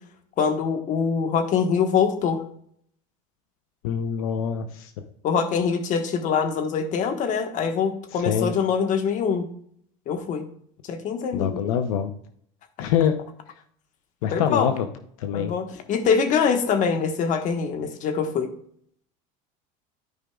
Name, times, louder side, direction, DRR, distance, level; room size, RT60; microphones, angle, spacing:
voice 1, 0.4-2.4 5.2-9.5 10.1-10.4 10.9-11.6 14.3-14.7 15.3-18.5, left 6 dB, 45° left, 7 dB, 1.4 m, -24 dB
voice 2, 3.8-4.9 8.1-8.5 11.3-12.1 12.8-13.2 14.2-14.9 15.2-15.5, left 8 dB, 85° left, 8 dB, 0.8 m, -25 dB
13.0 x 5.0 x 2.3 m, 0.65 s
supercardioid pair, 120°, 17 cm